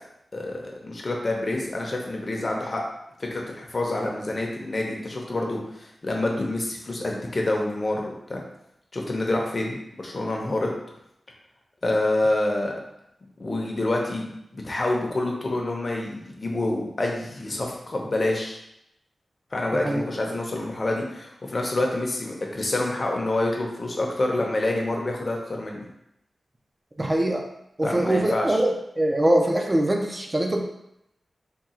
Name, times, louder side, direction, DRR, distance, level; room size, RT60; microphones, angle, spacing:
voice 1, 0.3-2.8 3.2-8.4 8.9-10.7 11.8-12.7 13.4-18.6 19.5-25.9 27.8-28.6, left 2 dB, 35° left, -1 dB, 0.7 m, -27 dB
voice 2, 27.0-27.4 27.8-28.7 29.0-30.6, right 1 dB, 20° right, 2 dB, 0.5 m, -22 dB
3.6 x 2.3 x 4.2 m, 0.81 s
wide cardioid pair, 125°, 0 cm